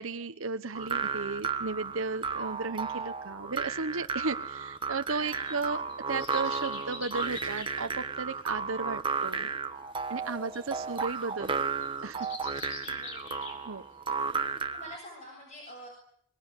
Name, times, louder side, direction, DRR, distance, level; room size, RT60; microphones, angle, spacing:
voice 1, 0.0-5.8 6.1-9.5 10.1-11.7 12.0-12.3 13.6-13.8, right 4 dB, 85° right, 9 dB, 1.1 m, -34 dB
sound 1, 0.7-15.0, right 4 dB, 25° right, 1.2 m, -34 dB
sound 2, 4.2-14.2 14.6-14.7, left 3 dB, 70° left, 6.8 m, -46 dB
voice 2, 5.2-5.9 10.3-10.9 12.8-13.8 14.3-15.9, equal, 35° left, 0 dB, 7.6 m, -49 dB
24.5 x 21.5 x 9.9 m, 0.68 s
head